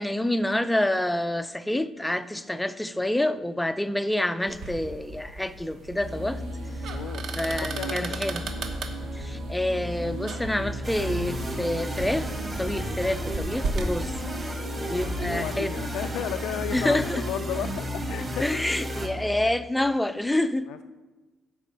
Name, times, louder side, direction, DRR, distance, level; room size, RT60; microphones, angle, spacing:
voice 1, 0.0-6.4 7.4-8.4 9.1-12.3 12.6-14.1 14.8-15.7 16.7-17.2 18.4-20.7, left 1 dB, 5° left, 12 dB, 0.3 m, -27 dB
sound 1, 4.5-13.9, right 3 dB, 55° right, 1.0 m, -36 dB
sound 2, 6.0-19.4, equal, 90° right, 3.1 m, -35 dB
voice 2, 6.9-8.2 14.5-18.6 19.4-19.5 20.7-20.8, left 11 dB, 85° left, 8 dB, 0.3 m, -35 dB
sound 3, 10.8-19.1, right 1 dB, 20° right, 1.1 m, -34 dB
10.5 x 4.2 x 7.5 m, 1.2 s
cardioid pair, 175°, 0 cm